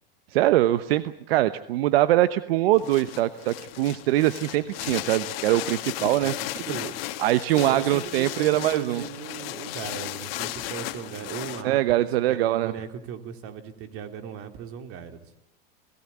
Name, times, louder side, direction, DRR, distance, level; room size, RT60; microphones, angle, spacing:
voice 1, 0.3-6.3 7.2-9.0 11.6-12.7, right 15 dB, 75° right, 13 dB, 1.1 m, -23 dB
sound 1, 2.7-11.6, left 16 dB, 70° left, 2.2 m, -35 dB
voice 2, 6.2-6.9 7.5-15.3, right 8 dB, 45° right, 8 dB, 3.5 m, -38 dB
27.0 x 18.0 x 8.7 m, 0.72 s
supercardioid pair, 120°, 30 cm